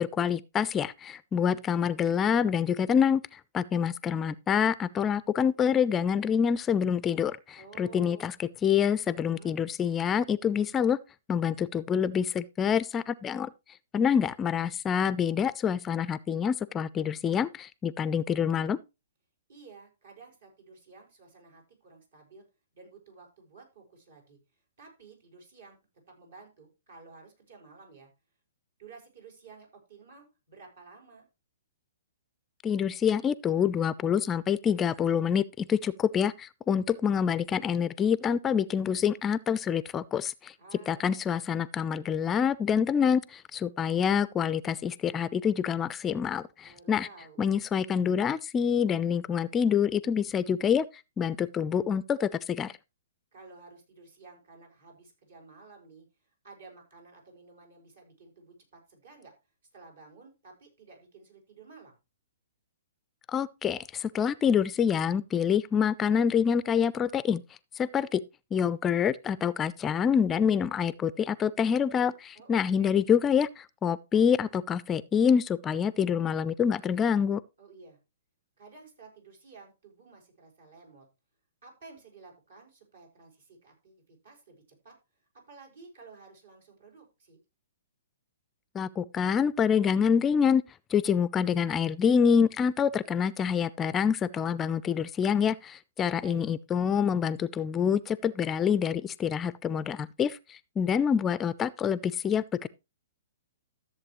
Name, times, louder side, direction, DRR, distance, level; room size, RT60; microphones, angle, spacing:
voice 1, 0.0-11.0 11.3-13.5 13.9-18.8 32.6-40.5 40.9-47.1 47.4-50.9 51.2-52.7 63.3-67.4 67.8-68.2 68.5-77.4 88.7-90.6 90.9-102.7, left 7 dB, 20° left, 0.4 m, -26 dB
voice 2, 7.5-8.3 9.1-9.6 19.5-22.4 22.7-24.4 24.8-25.8 26.1-28.1 28.8-31.3 40.6-41.3 46.6-47.4 53.3-59.3 59.7-61.9 72.3-73.0 77.6-78.0 78.6-81.1 81.6-84.9 85.5-87.4 96.0-96.4, right 4 dB, 70° right, 5.3 m, -53 dB
14.0 x 7.3 x 3.1 m
hypercardioid pair, 125°, 0 cm